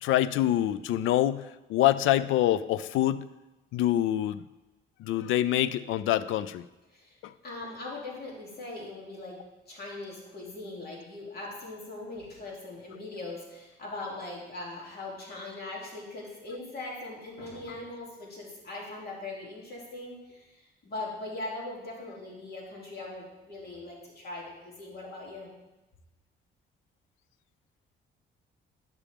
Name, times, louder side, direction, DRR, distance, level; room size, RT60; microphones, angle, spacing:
voice 1, 0.0-3.2 3.7-4.4 5.0-6.6 7.2-7.3, left 13 dB, 85° left, 16 dB, 0.4 m, -25 dB
voice 2, 7.4-9.4 9.7-25.5, left 2 dB, 55° left, -3 dB, 2.7 m, -40 dB
11.0 x 6.1 x 3.5 m, 1.1 s
cardioid pair, 90°, 20 cm